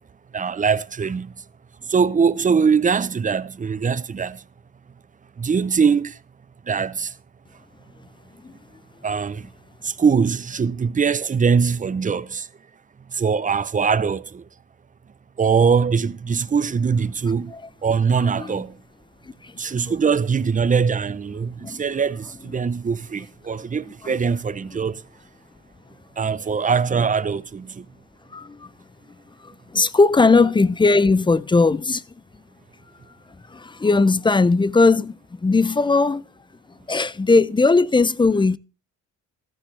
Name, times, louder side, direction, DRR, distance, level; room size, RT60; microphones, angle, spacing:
voice 1, 0.3-1.3 1.9-4.4 5.4-6.2 6.7-7.1 9.0-9.5 9.8-12.5 13.1-14.4 15.4-17.5 17.8-18.8 19.6-25.0 26.2-27.9, right 6 dB, 25° right, 0.7 m, -22 dB
voice 2, 28.3-28.7 29.4-32.0 33.5-36.2 36.9-38.6, left 3 dB, 15° left, 0.5 m, -18 dB
14.5 x 13.0 x 3.3 m
cardioid pair, 90°, 30 cm